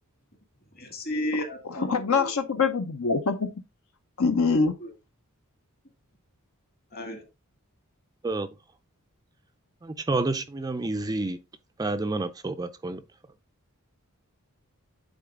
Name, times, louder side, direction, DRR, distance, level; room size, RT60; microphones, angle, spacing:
voice 1, 0.8-2.4 4.5-4.9 6.9-7.2, left 1 dB, 45° left, 2.0 m, -33 dB
voice 2, 1.6-3.5 4.2-4.7, left 4 dB, 70° left, 0.7 m, -24 dB
voice 3, 10.1-11.4 11.8-13.0, right 2 dB, 15° right, 0.4 m, -28 dB
9.0 x 3.9 x 3.7 m
head